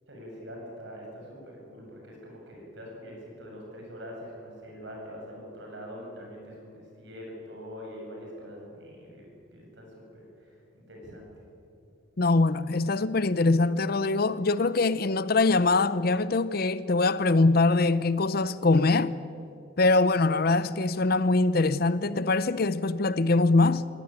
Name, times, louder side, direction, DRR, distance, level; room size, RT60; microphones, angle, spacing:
voice 1, 0.1-11.3, equal, 60° right, 7.6 m, -44 dB
voice 2, 12.2-19.2 19.8-23.9, left 3 dB, 50° left, 0.6 m, -23 dB
22.5 x 17.0 x 9.0 m
head